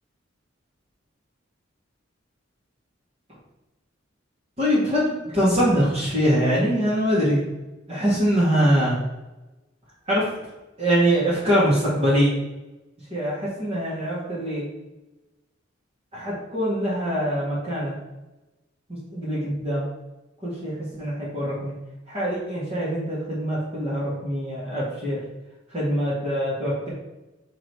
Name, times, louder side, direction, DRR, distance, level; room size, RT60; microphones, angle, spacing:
voice 1, 4.6-7.4 7.9-9.0 10.1-10.3 10.8-12.4 13.1-14.7 16.1-17.9 19.1-19.8 20.4-21.7 22.1-25.2 25.7-26.9, equal, 30° right, -9 dB, 1.9 m, -23 dB
6.3 x 3.8 x 4.7 m, 1.1 s
head